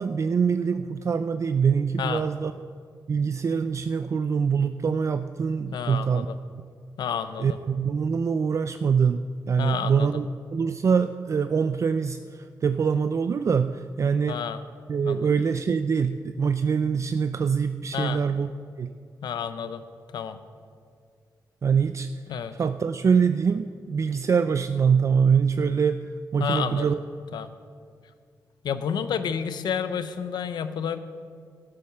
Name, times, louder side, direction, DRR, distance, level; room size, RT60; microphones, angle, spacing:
voice 1, 0.0-2.7 3.1-6.3 7.4-14.4 14.9-18.5 18.8-18.9 21.6-22.1 22.5-27.0, right 6 dB, 45° right, 10 dB, 0.4 m, -24 dB
voice 2, 5.7-6.3 7.0-7.6 9.6-10.2 14.3-14.6 15.0-15.3 17.9-18.2 19.2-19.8 20.1-20.4 22.3-22.6 26.4-26.9 27.3-27.5 28.6-31.0, left 7 dB, 85° left, 11 dB, 0.7 m, -30 dB
12.0 x 8.6 x 6.6 m, 2.1 s
cardioid pair, 95°, 7 cm